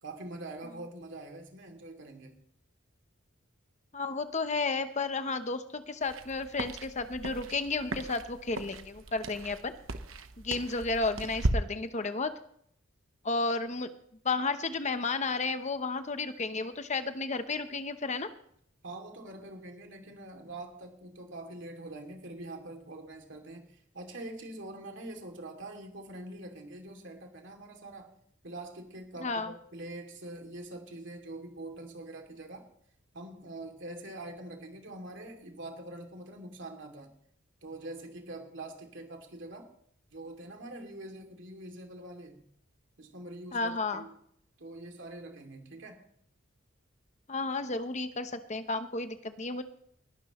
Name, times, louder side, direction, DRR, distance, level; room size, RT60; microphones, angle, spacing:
voice 1, 0.0-2.4 18.8-28.1 28.4-32.7 33.1-37.1 37.6-39.7 40.1-42.4 43.0-44.2 44.6-46.0, right 2 dB, 60° right, 3 dB, 2.7 m, -44 dB
voice 2, 3.9-9.8 10.4-12.3 13.2-13.9 14.2-18.3 29.2-29.5 43.5-44.0 47.3-49.6, left 3 dB, 35° left, 9 dB, 0.8 m, -32 dB
sound 1, 6.0-11.5, right 2 dB, 80° right, 1.0 m, -37 dB
20.0 x 12.0 x 3.1 m, 0.66 s
head